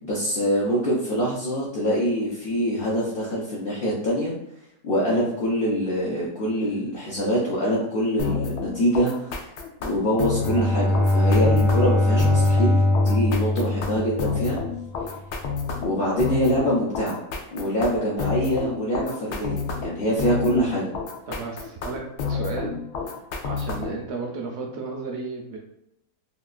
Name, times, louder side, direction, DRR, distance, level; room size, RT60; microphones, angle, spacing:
voice 1, 0.0-4.3 4.8-9.3 9.8-14.6 15.8-17.2 17.5-20.9, equal, 60° left, -6 dB, 0.6 m, -24 dB
sound 1, 8.2-24.1, left 5 dB, 85° left, 1.1 m, -30 dB
Bowed string instrument, 10.3-14.8, left 2 dB, 5° left, 0.4 m, -21 dB
voice 2, 21.3-22.0 22.3-22.7 23.4-25.6, right 3 dB, 65° right, 0 dB, 0.6 m, -33 dB
3.6 x 2.3 x 2.4 m, 0.78 s
omnidirectional pair, 1.6 m